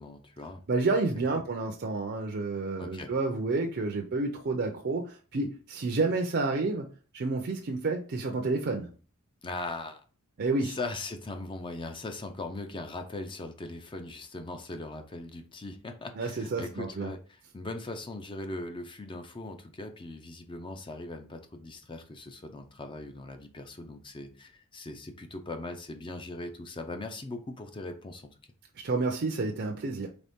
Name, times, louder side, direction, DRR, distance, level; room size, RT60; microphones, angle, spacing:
voice 1, 0.0-0.6 1.2-1.4 2.8-3.1 9.4-10.0 10.6-28.3, left 2 dB, 25° left, 6 dB, 0.5 m, -40 dB
voice 2, 0.7-6.9 7.1-8.9 10.4-10.8 16.2-17.1 28.8-30.1, right 3 dB, 50° right, 2 dB, 0.5 m, -30 dB
4.1 x 3.4 x 3.5 m, 0.38 s
head